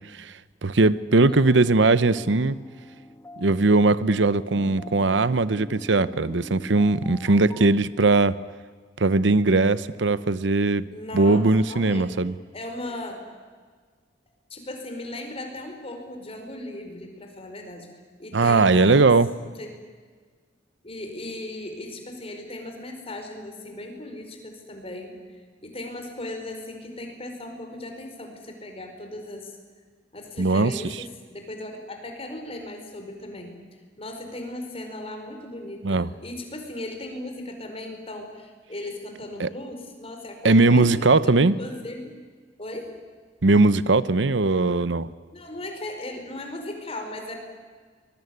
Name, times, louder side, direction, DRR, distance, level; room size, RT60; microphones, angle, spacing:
voice 1, 0.6-2.6 3.4-8.4 9.0-10.9 11.1-12.3 18.3-19.3 30.4-30.7 35.8-36.1 39.4-39.5 40.4-41.5 43.4-45.1, right 3 dB, 75° right, 16 dB, 0.8 m, -19 dB
voice 2, 1.1-1.6 10.9-12.2 12.5-13.2 14.5-17.9 18.2-19.1 19.4-19.7 20.8-25.1 25.6-29.5 30.1-33.6 34.0-42.1 42.6-42.9 45.3-47.4, left 1 dB, 30° left, 4 dB, 4.9 m, -37 dB
sound 1, 2.1-7.7, left 1 dB, 15° left, 1.7 m, -44 dB
24.0 x 21.5 x 9.5 m, 1.6 s
head